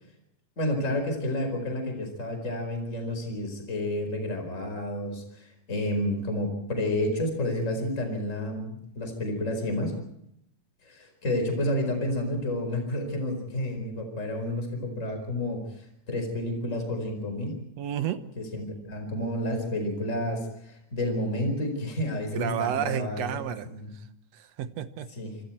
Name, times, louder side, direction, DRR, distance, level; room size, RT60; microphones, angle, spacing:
voice 1, 0.6-9.9 10.8-17.6 18.4-23.4 23.6-23.9 25.1-25.4, left 1 dB, 20° left, 5 dB, 4.9 m, -30 dB
voice 2, 17.8-18.3 22.3-23.7 24.3-25.1, right 10 dB, 60° right, 10 dB, 2.0 m, -31 dB
26.5 x 26.5 x 4.5 m, 0.74 s
omnidirectional pair, 3.7 m